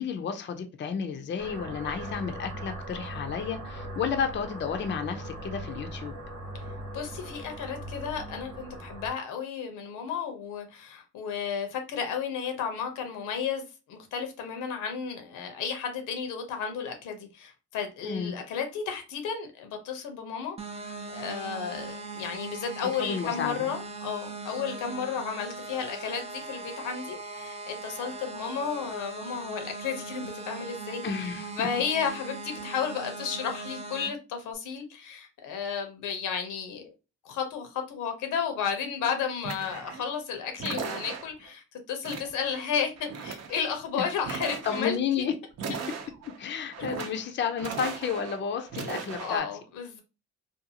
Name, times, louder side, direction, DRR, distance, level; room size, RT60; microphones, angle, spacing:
voice 1, 0.0-6.1 18.0-18.3 23.0-23.7 31.0-31.7 43.9-44.1 44.6-45.3 46.4-49.5, left 7 dB, 40° left, 0.5 m, -31 dB
sound 1, 1.4-9.1, right 1 dB, 80° right, 1.0 m, -40 dB
voice 2, 6.9-31.3 31.6-36.9 37.2-45.3 49.2-50.0, left 7 dB, 85° left, 0.8 m, -33 dB
sound 2, 20.6-34.1, right 3 dB, 20° right, 0.4 m, -40 dB
sound 3, 39.4-40.1 40.6-41.5 42.0-42.7 43.0-43.7 44.2-45.0 45.5-46.4 46.7-47.3 47.6-48.4 48.7-49.4, right 5 dB, 60° right, 0.7 m, -37 dB
2.5 x 2.3 x 2.7 m
cardioid pair, 90°, 30 cm